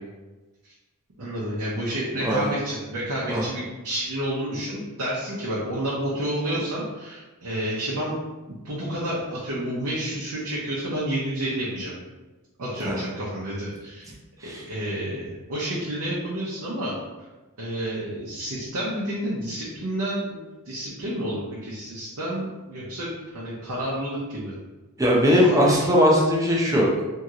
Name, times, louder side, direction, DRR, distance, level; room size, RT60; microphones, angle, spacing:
voice 1, 1.2-8.1 8.6-11.9 12.6-14.1 14.4-16.9 17.6-20.4 20.7-23.1 23.3-24.5 25.3-25.7, right 1 dB, 80° right, -7 dB, 0.7 m, -30 dB
voice 2, 25.0-27.0, equal, 15° right, -3 dB, 0.5 m, -20 dB
2.9 x 2.7 x 2.4 m, 1.2 s
head